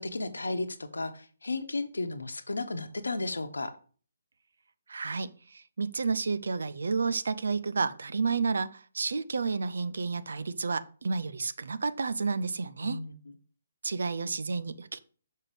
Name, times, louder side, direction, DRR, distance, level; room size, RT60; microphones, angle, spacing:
voice 1, 0.0-3.7 12.8-13.1, left 2 dB, 70° left, 1.0 m, -34 dB
voice 2, 4.9-13.0 13.8-15.0, right 4 dB, 60° right, 0.6 m, -31 dB
6.5 x 5.7 x 5.1 m
figure-of-eight pair, 135°, 0 cm